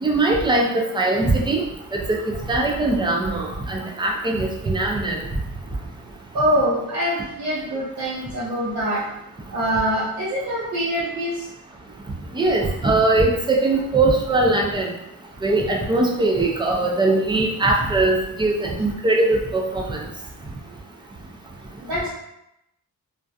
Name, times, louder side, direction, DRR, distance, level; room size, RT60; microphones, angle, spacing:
voice 1, 0.0-1.6 1.9-2.0 2.5-5.2 12.3-14.9 15.4-20.0, right 2 dB, 15° right, -1 dB, 0.3 m, -21 dB
voice 2, 6.3-9.1 9.5-11.5 18.8-18.9 21.9-22.1, equal, 65° right, -9 dB, 0.8 m, -24 dB
2.6 x 2.2 x 2.3 m, 0.84 s
wide cardioid pair, 135°, 36 cm